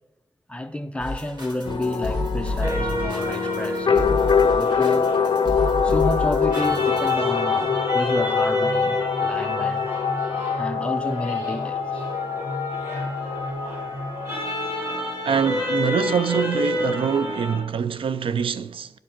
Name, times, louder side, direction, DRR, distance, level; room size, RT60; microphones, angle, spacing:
voice 1, 0.5-4.2 4.5-5.1 5.8-9.9 10.6-12.0, left 1 dB, 10° left, 0.6 m, -30 dB
sound 1, 1.0-7.1, left 1 dB, 50° right, 2.7 m, -30 dB
sound 2, 1.7-15.2, left 6 dB, 55° left, 0.5 m, -25 dB
sound 3, 2.6-17.6, left 1 dB, 30° right, 3.2 m, -29 dB
voice 2, 15.2-18.9, right 7 dB, 75° right, 0.4 m, -24 dB
10.5 x 5.0 x 5.9 m
wide cardioid pair, 95°, 9 cm